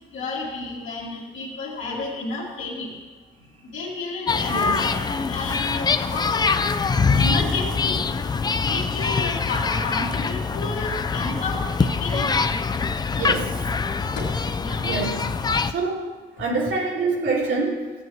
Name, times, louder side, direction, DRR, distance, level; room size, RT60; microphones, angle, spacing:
voice 1, 0.1-2.9 3.6-6.5 7.2-8.0 8.6-12.3 14.2-14.3 14.6-14.8, left 3 dB, 75° left, -7 dB, 2.0 m, -31 dB
sound 1, 4.3-15.7, left 4 dB, 20° left, 0.3 m, -24 dB
voice 2, 4.5-4.8 13.1-13.6 14.8-15.3 15.6-16.1 16.4-17.9, right 3 dB, 75° right, -4 dB, 2.5 m, -26 dB
14.5 x 7.8 x 3.1 m, 1.3 s
cardioid pair, 90°, 20 cm